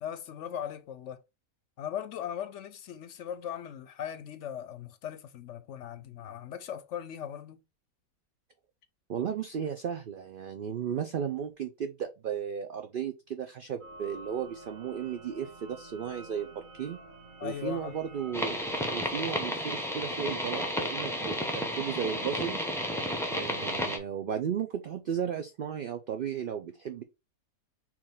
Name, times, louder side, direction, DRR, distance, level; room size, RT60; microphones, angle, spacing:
voice 1, 0.0-1.2 1.8-7.6 17.4-18.0, left 9 dB, 65° left, 0.8 m, -39 dB
voice 2, 9.1-17.0 17.4-18.6 18.9-22.6 23.3-27.0, right 8 dB, 90° right, 0.4 m, -35 dB
sound 1, 13.8-19.0, right 2 dB, 40° right, 0.8 m, -49 dB
sound 2, 18.3-24.0, equal, 5° left, 0.4 m, -32 dB
4.4 x 3.0 x 3.7 m
omnidirectional pair, 1.5 m